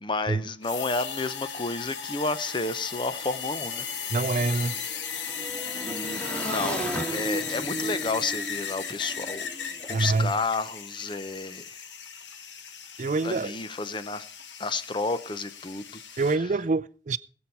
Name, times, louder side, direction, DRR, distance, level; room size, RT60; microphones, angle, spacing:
voice 1, 0.0-3.9 4.1-4.6 5.8-9.5 9.9-11.8 13.2-14.2 14.6-16.0, left 3 dB, 25° left, 0.8 m, -31 dB
sound 1, 0.6-16.4, left 7 dB, 85° left, 1.3 m, -36 dB
Motorcycle / Engine, 2.5-2.6 2.8-10.0, right 1 dB, 5° left, 2.2 m, -36 dB
voice 2, 4.1-4.7 9.9-10.3 13.0-13.6 16.2-17.2, right 3 dB, 40° right, 0.5 m, -26 dB
20.5 x 7.2 x 4.6 m
head